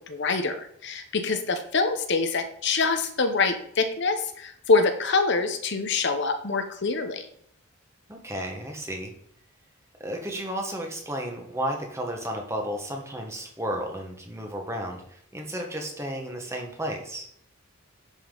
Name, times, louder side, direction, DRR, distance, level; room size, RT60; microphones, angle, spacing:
voice 1, 0.1-0.5 0.8-7.3, left 4 dB, 55° left, 7 dB, 0.9 m, -25 dB
voice 2, 8.1-9.1 10.0-17.3, equal, 15° right, 2 dB, 1.4 m, -33 dB
10.5 x 5.5 x 3.9 m, 0.67 s
head